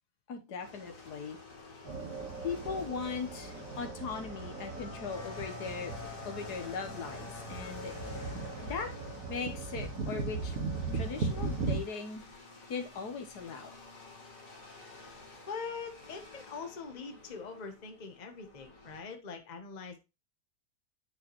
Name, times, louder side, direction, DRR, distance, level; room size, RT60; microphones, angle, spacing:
voice 1, 0.3-1.4 2.4-8.3 8.6-8.9 9.3-10.6 10.9-12.2 12.7-13.7, left 5 dB, 70° left, 5 dB, 1.6 m, -39 dB
sound 1, 0.6-19.0, left 3 dB, 55° left, 2.1 m, -49 dB
sound 2, 1.8-11.8, right 4 dB, 60° right, 2.3 m, -38 dB
voice 2, 15.5-20.0, left 5 dB, 30° left, 6 dB, 1.1 m, -43 dB
9.9 x 4.6 x 3.0 m, 0.26 s
omnidirectional pair, 1.8 m